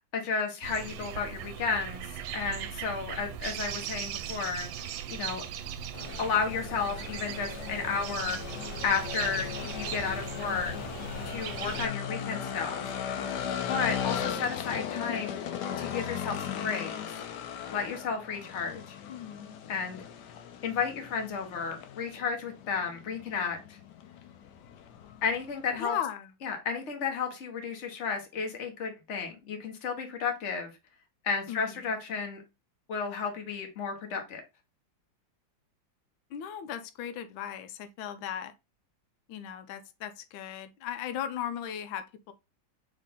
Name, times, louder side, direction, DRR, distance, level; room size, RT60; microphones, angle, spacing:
voice 1, 0.1-2.1 2.3-4.7 5.1-5.4 6.2-8.4 8.8-10.7 11.3-12.9 13.7-15.4 15.8-16.9 17.7-19.0 19.7-20.0 20.6-23.8 25.2-25.9 26.4-30.7 31.2-32.4 32.9-34.4, left 5 dB, 45° left, 1.2 m, -32 dB
sound 1, 0.6-11.9, right 9 dB, 85° right, 1.3 m, -39 dB
sound 2, 5.9-25.8, left 8 dB, 70° left, 1.1 m, -38 dB
voice 2, 19.1-19.5 25.8-26.3 31.5-31.8 36.3-38.5 39.3-42.3, left 9 dB, 90° left, 1.4 m, -37 dB
4.1 x 3.6 x 3.5 m
omnidirectional pair, 2.1 m